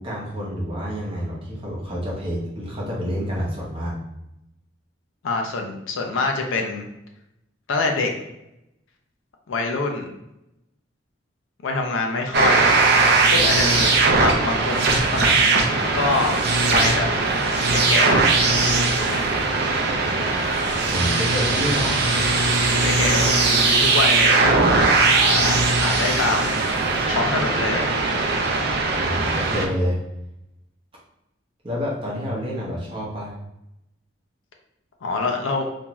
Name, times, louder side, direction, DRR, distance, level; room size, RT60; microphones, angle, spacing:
voice 1, 0.0-3.9 20.8-22.1 28.9-30.0 31.6-33.3, equal, 30° right, -5 dB, 0.7 m, -28 dB
voice 2, 5.2-6.8 7.7-8.1 9.5-10.1 11.6-12.7 13.3-15.4 15.9-16.4 16.7-17.1 17.7-18.2 18.8-19.3 22.8-24.5 24.9-27.8 35.0-35.7, left 3 dB, 85° left, 2 dB, 0.5 m, -25 dB
sound 1, 12.3-29.7, right 3 dB, 55° right, 0.4 m, -19 dB
2.5 x 2.3 x 2.9 m, 0.87 s
head